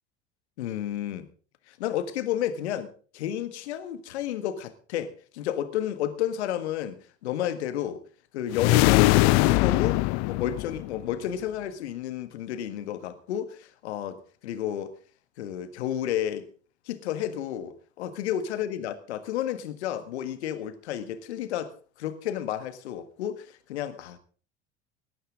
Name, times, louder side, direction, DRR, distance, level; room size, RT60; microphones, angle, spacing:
voice 1, 0.6-1.3 1.7-8.0 8.3-14.9 15.4-16.5 16.9-21.7 22.0-24.2, left 10 dB, 70° left, 1.7 m, -31 dB
sound 1, 8.5-11.1, left 21 dB, 50° left, 0.6 m, -21 dB
18.5 x 13.0 x 3.7 m
figure-of-eight pair, 70°, 34 cm